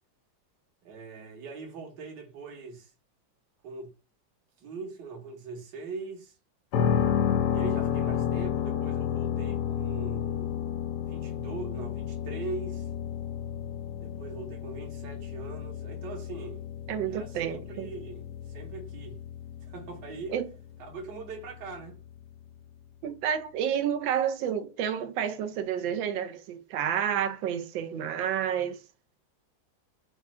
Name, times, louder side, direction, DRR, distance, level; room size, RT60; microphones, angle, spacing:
voice 1, 0.8-2.9 3.6-3.9 4.6-6.3 7.5-10.5 11.1-12.9 14.0-16.6 17.1-18.3 18.5-19.2 19.7-20.4 20.9-22.0, right 4 dB, 65° right, 1.8 m, -41 dB
sound 1, 6.7-22.6, left 9 dB, 70° left, 1.1 m, -32 dB
voice 2, 16.9-17.9 20.3-20.5 23.0-28.8, right 9 dB, 85° right, 1.4 m, -30 dB
4.9 x 2.4 x 4.2 m
omnidirectional pair, 2.0 m